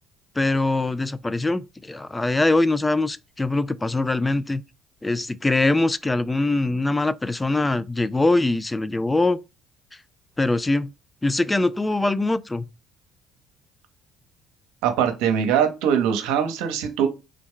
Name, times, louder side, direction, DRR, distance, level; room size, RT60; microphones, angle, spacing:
voice 1, 0.4-4.6 5.0-9.4 10.4-10.9 11.2-12.7, left 2 dB, 15° left, 0.3 m, -22 dB
voice 2, 14.8-17.1, right 8 dB, 80° right, 0.8 m, -22 dB
3.4 x 3.0 x 3.7 m
hypercardioid pair, 65°, 0 cm